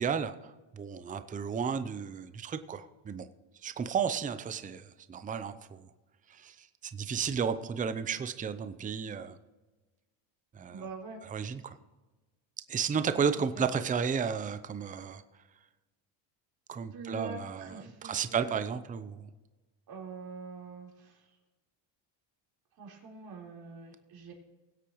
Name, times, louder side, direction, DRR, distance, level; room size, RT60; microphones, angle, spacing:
voice 1, 0.0-3.3 3.6-5.8 6.3-9.4 10.5-10.9 11.2-11.7 12.7-15.2 16.7-19.3, right 6 dB, 15° right, 11 dB, 0.6 m, -33 dB
voice 2, 10.7-11.2 13.5-13.6 16.9-18.6 19.9-21.3 22.8-24.3, right 4 dB, 45° right, -1 dB, 4.0 m, -44 dB
21.0 x 8.4 x 3.1 m, 1.2 s
cardioid pair, 120°, 49 cm